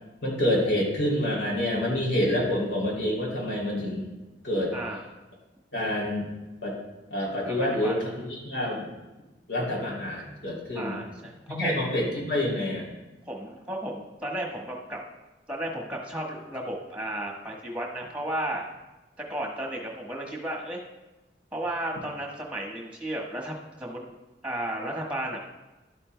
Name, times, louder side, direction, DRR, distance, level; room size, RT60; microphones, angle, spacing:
voice 1, 0.2-4.1 4.4-4.7 5.7-6.3 6.6-6.7 7.1-8.9 9.5-11.0 11.5-12.9, left 1 dB, 80° left, -3 dB, 2.9 m, -27 dB
voice 2, 4.7-5.1 7.4-7.9 10.7-11.8 13.3-15.0 15.5-18.7 19.2-20.8 21.5-24.1 24.4-25.4, right 1 dB, 5° right, -1 dB, 1.3 m, -34 dB
12.0 x 8.5 x 2.2 m, 1.1 s
head